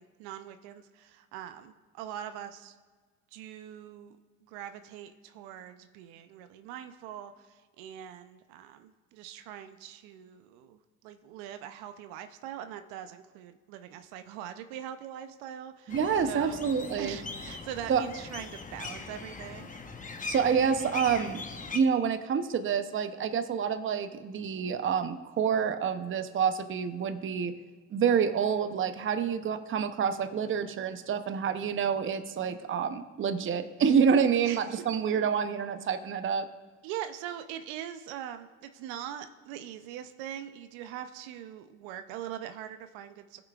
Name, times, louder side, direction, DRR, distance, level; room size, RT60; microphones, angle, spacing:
voice 1, 0.0-2.7 3.3-4.1 4.5-7.3 7.8-10.8 11.0-16.6 17.0-19.7 34.4-35.0 36.8-43.4, right 10 dB, 75° right, 9 dB, 0.7 m, -42 dB
sound 1, 15.9-21.8, left 4 dB, 20° left, 0.9 m, -41 dB
voice 2, 15.9-17.2 17.9-18.1 20.3-21.4 21.7-27.5 27.9-36.5, right 7 dB, 30° right, 9 dB, 0.7 m, -28 dB
17.5 x 5.9 x 2.4 m, 1.4 s
hypercardioid pair, 75°, 38 cm